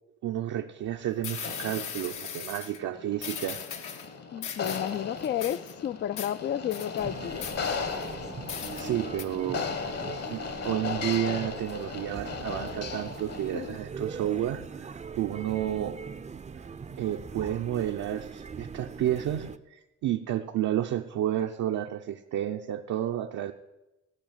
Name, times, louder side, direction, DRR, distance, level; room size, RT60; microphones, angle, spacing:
voice 1, 0.2-3.6 8.7-9.7 10.3-16.0 16.6-16.7 17.0-23.5, right 12 dB, 70° right, 0.7 m, -31 dB
sound 1, 0.9-1.0 1.2-2.8 3.2-4.1 4.4-5.0 5.2-5.7 6.2-6.3 6.7-7.0 7.4-8.1 8.5-8.9 9.2-9.3, left 7 dB, 75° left, 1.4 m, -38 dB
sound 2, 1.4-13.7, left 5 dB, 55° left, 1.7 m, -37 dB
voice 2, 4.3-7.5 13.5-13.8, left 11 dB, 40° left, 0.4 m, -32 dB
sound 3, 7.0-19.6, right 5 dB, 25° right, 0.5 m, -41 dB
16.0 x 5.6 x 8.9 m
cardioid pair, 90°, 30 cm